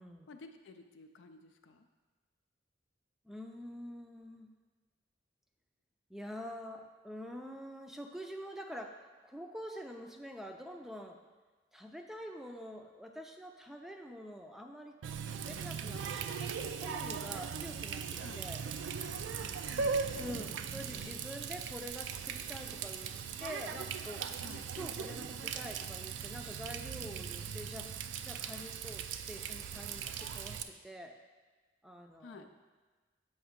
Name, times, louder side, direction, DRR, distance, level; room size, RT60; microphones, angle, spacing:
voice 1, 0.3-1.9 18.2-18.5 19.4-20.5 20.9-21.2 24.4-24.7 32.2-32.5, left 3 dB, 90° left, 7 dB, 0.4 m, -53 dB
voice 2, 3.3-4.5 6.1-9.0 9.2-11.2 11.7-14.9 15.3-16.0 16.4-18.0 18.4-18.6 20.2-23.1 23.4-24.2 24.7-27.9 28.2-31.1 31.8-32.5, equal, ahead, 3 dB, 0.4 m, -46 dB
Water tap faucet, 15.0-30.6, right 6 dB, 75° right, 0.3 m, -39 dB
7.1 x 2.8 x 5.0 m, 1.4 s
head